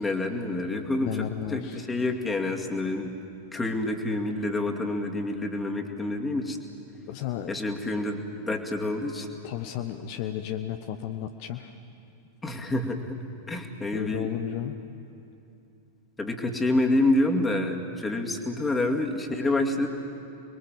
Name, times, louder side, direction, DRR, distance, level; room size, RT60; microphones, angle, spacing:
voice 1, 0.0-3.2 3.5-6.6 7.5-9.3 12.4-13.2 13.5-14.3 16.2-19.9, left 2 dB, 10° left, 2 dB, 2.3 m, -28 dB
voice 2, 1.0-1.9 7.1-7.5 9.4-11.8 13.9-14.8, left 11 dB, 45° left, 7 dB, 0.9 m, -33 dB
29.5 x 21.5 x 7.5 m, 2.8 s
figure-of-eight pair, 90°, 0 cm